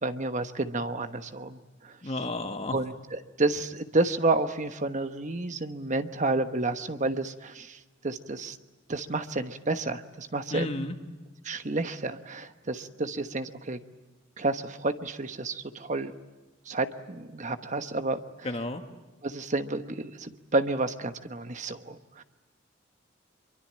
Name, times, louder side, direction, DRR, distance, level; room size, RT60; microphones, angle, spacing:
voice 1, 0.0-2.0 2.7-7.8 8.0-8.6 8.9-10.8 11.4-13.8 14.4-16.1 16.7-18.2 19.2-22.2, right 2 dB, 40° right, 9 dB, 1.2 m, -30 dB
voice 2, 2.0-2.8 10.5-10.9 18.4-18.8, left 2 dB, 35° left, 6 dB, 1.5 m, -32 dB
25.0 x 23.5 x 8.8 m, 1.2 s
head